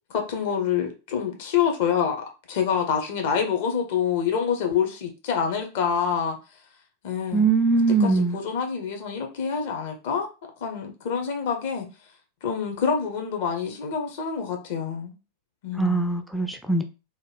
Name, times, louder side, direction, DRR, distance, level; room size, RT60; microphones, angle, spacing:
voice 1, 0.1-6.4 7.0-7.5 8.0-10.3 10.6-11.9 12.4-15.2 15.6-16.1, left 7 dB, 50° left, 0.8 m, -26 dB
voice 2, 7.3-8.4 15.8-16.8, right 4 dB, ahead, 0.3 m, -21 dB
2.9 x 2.2 x 3.2 m
figure-of-eight pair, 90°, 0 cm